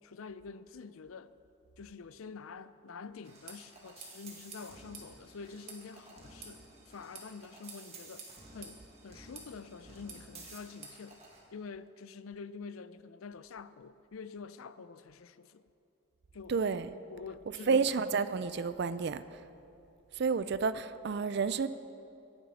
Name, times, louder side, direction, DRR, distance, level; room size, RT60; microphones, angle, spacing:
voice 1, 0.0-1.3 1.8-8.2 8.5-11.2 11.5-15.7 16.3-16.6 17.1-17.9 20.4-20.5, left 5 dB, 90° left, 0.5 m, -47 dB
sound 1, 3.2-11.4, right 3 dB, 30° right, 2.0 m, -51 dB
voice 2, 16.5-16.9 17.7-19.2 20.2-21.7, right 5 dB, 55° right, 0.4 m, -30 dB
19.5 x 9.8 x 4.2 m
head